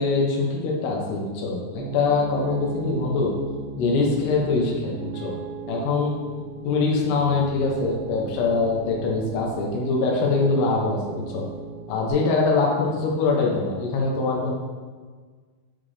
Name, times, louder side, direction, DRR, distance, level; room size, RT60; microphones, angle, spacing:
voice 1, 0.0-3.3 3.8-5.3 5.7-6.1 6.6-11.5 11.9-14.6, left 4 dB, 85° left, -1 dB, 2.3 m, -23 dB
Piano, 1.8-12.1, right 5 dB, 90° right, 2.5 m, -36 dB
7.9 x 3.8 x 3.2 m, 1.5 s
omnidirectional pair, 5.9 m